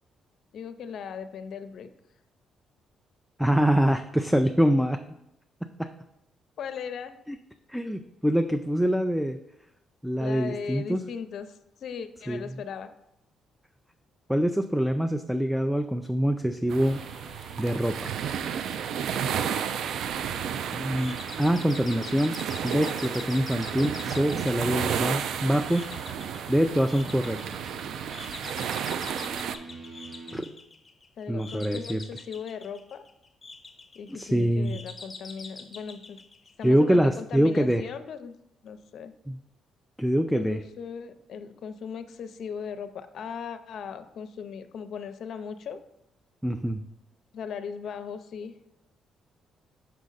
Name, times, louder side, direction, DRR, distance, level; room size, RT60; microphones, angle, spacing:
voice 1, 0.5-1.9 6.6-7.1 10.2-12.9 31.2-33.1 34.0-36.2 36.6-38.3 38.6-39.1 40.3-45.8 47.3-48.6, left 6 dB, 65° left, 10 dB, 0.5 m, -38 dB
voice 2, 3.4-5.0 5.8-5.9 7.3-7.4 7.7-9.4 10.0-11.0 12.3-12.5 14.3-17.0 17.6-18.1 20.7-22.4 22.6-25.9 26.5-27.7 30.3-30.5 31.3-32.0 34.1-34.8 36.6-37.8 39.3-39.4 40.0-40.6 46.4-46.8, equal, ahead, 8 dB, 0.4 m, -25 dB
sound 1, 16.6-30.4, right 3 dB, 50° right, 0.9 m, -47 dB
sound 2, 16.7-29.6, right 8 dB, 75° right, 0.4 m, -32 dB
sound 3, 21.0-37.1, left 4 dB, 30° left, 0.9 m, -45 dB
6.2 x 5.7 x 3.9 m, 0.82 s
cardioid pair, 90°, 0 cm